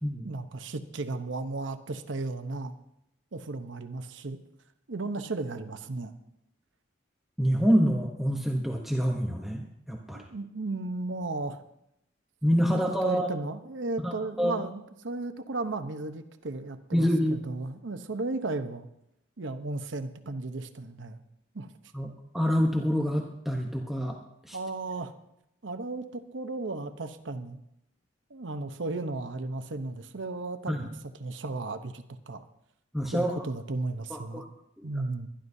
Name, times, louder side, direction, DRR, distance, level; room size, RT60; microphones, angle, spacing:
voice 1, 0.2-2.7 3.3-4.4 4.9-6.1 10.1-11.6 12.7-18.9 19.4-21.2 21.5-21.7 24.5-25.1 25.6-27.6 28.3-30.9 31.2-32.4 33.1-34.4 34.8-35.3, right 2 dB, 80° right, 9 dB, 0.9 m, -35 dB
voice 2, 7.4-10.3 12.4-13.3 14.0-14.6 16.9-17.4 21.9-24.6 30.7-30.9 32.9-33.4 34.1-34.4 34.8-34.9, equal, ahead, 0 dB, 0.9 m, -27 dB
23.0 x 11.5 x 2.7 m, 0.82 s
head